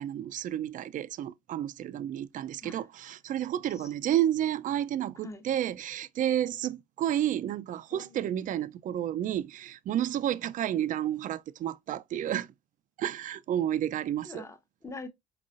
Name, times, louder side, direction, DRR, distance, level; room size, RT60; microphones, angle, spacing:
voice 1, 0.0-12.5 13.0-14.4, right 11 dB, 50° right, 0.5 m, -31 dB
voice 2, 14.2-15.1, left 3 dB, 15° left, 0.9 m, -43 dB
4.2 x 3.8 x 2.4 m
cardioid pair, 110°, 17 cm